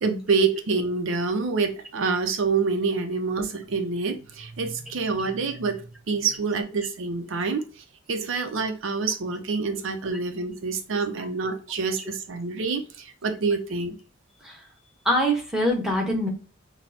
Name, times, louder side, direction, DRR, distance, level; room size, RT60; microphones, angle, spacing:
voice 1, 0.0-14.0, right 4 dB, 65° right, 7 dB, 0.5 m, -27 dB
voice 2, 15.0-16.3, equal, 5° right, -1 dB, 1.0 m, -23 dB
5.9 x 2.1 x 2.7 m, 0.35 s
head